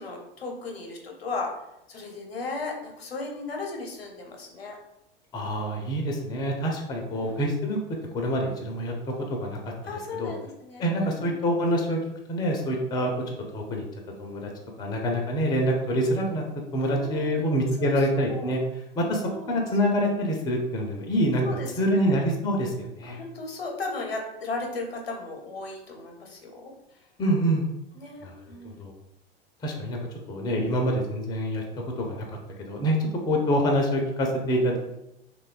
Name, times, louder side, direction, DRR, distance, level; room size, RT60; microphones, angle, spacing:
voice 1, 0.0-1.5 1.9-4.8 7.1-7.4 9.8-11.4 16.8-18.5 19.3-19.6 21.4-22.1 23.1-26.7 27.9-28.7, left 3 dB, 85° left, 1 dB, 0.6 m, -36 dB
voice 2, 5.3-7.8 8.1-9.1 9.4-9.6 10.2-10.3 10.8-12.0 12.3-13.2 13.5-13.8 14.2-14.5 14.8-16.4 16.7-18.6 19.0-21.5 21.8-23.2 27.2-27.7 28.2-28.3 28.6-28.9 29.6-30.0 30.3-31.6 32.0-34.8, equal, 15° left, 1 dB, 0.4 m, -26 dB
3.0 x 2.2 x 2.3 m, 0.86 s
figure-of-eight pair, 85°, 30 cm